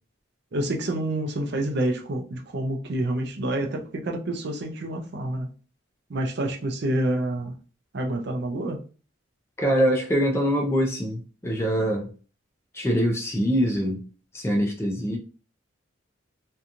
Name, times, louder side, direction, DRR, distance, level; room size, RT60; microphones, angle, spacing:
voice 1, 0.5-5.5 6.1-7.6 7.9-8.8, right 1 dB, 55° right, 0.5 m, -28 dB
voice 2, 9.6-12.1 12.7-14.0 14.3-15.2, equal, 15° left, 0.4 m, -24 dB
2.8 x 2.3 x 2.5 m
head